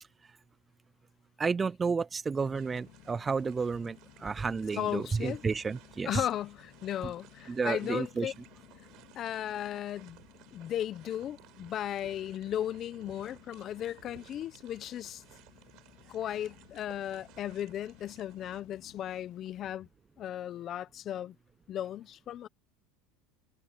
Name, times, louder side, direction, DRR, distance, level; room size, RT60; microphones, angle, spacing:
voice 1, 1.4-6.2 7.0-7.1 7.5-8.3, right 5 dB, 15° right, 0.4 m, -31 dB
sound 1, 2.3-19.8, left 20 dB, 55° left, 4.0 m, -58 dB
sound 2, 2.5-18.6, right 19 dB, 50° right, 7.5 m, -58 dB
voice 2, 4.7-5.4 6.0-8.3 9.2-10.2 10.5-15.2 16.1-19.9 20.2-21.3 21.7-22.5, left 11 dB, 35° left, 1.1 m, -36 dB
supercardioid pair, 140°, 0 cm